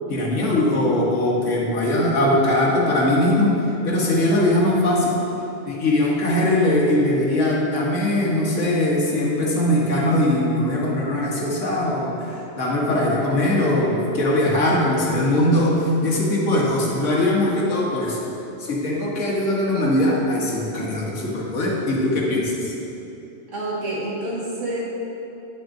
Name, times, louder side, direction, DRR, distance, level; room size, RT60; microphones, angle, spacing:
voice 1, 0.1-3.5 3.8-5.1 5.7-18.2 18.6-22.7, left 1 dB, 75° left, -4 dB, 1.6 m, -21 dB
voice 2, 23.5-24.8, right 1 dB, 80° right, -6 dB, 2.1 m, -28 dB
9.2 x 8.1 x 2.6 m, 3.0 s
omnidirectional pair, 1.3 m